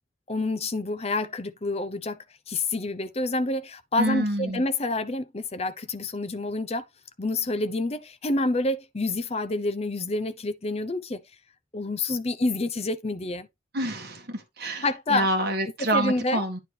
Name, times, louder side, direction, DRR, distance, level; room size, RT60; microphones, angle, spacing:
voice 1, 0.3-6.9 7.2-11.2 11.7-13.5 14.6-15.3 15.8-16.4, left 2 dB, 30° left, 0.7 m, -28 dB
voice 2, 4.0-4.6 13.7-16.6, right 1 dB, 50° right, 1.7 m, -27 dB
9.5 x 4.3 x 3.3 m
head